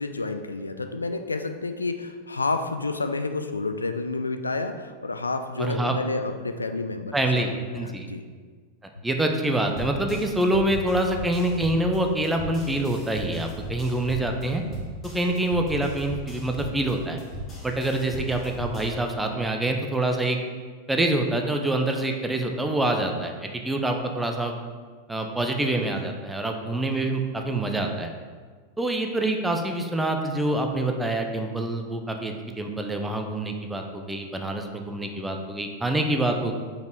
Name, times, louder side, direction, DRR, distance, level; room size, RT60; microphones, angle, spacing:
voice 1, 0.0-8.2, left 3 dB, 80° left, 8 dB, 0.3 m, -30 dB
voice 2, 5.6-6.0 7.1-8.1 9.0-14.6 15.1-17.2 17.6-20.4 20.9-24.5 25.1-28.1 28.8-36.5, right 1 dB, 5° right, 3 dB, 0.6 m, -26 dB
sound 1, 9.7-18.9, equal, 25° left, 1.4 m, -37 dB
5.2 x 4.1 x 4.5 m, 1.6 s
figure-of-eight pair, 90°, 0 cm